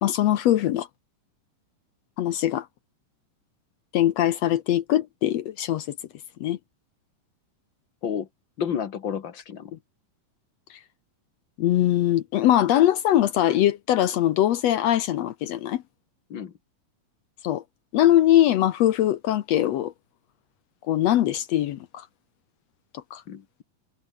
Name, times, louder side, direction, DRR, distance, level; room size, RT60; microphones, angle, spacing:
voice 1, 0.0-0.9 2.2-2.7 3.9-6.0 6.4-6.6 9.7-9.8 10.7-10.8 11.6-15.8 17.4-17.6 17.9-19.9 20.9-22.1 22.9-23.2, left 12 dB, 75° left, 1.6 m, -22 dB
voice 2, 8.6-9.7 16.3-16.5 23.3-23.6, left 8 dB, 50° left, 1.5 m, -31 dB
omnidirectional pair, 3.9 m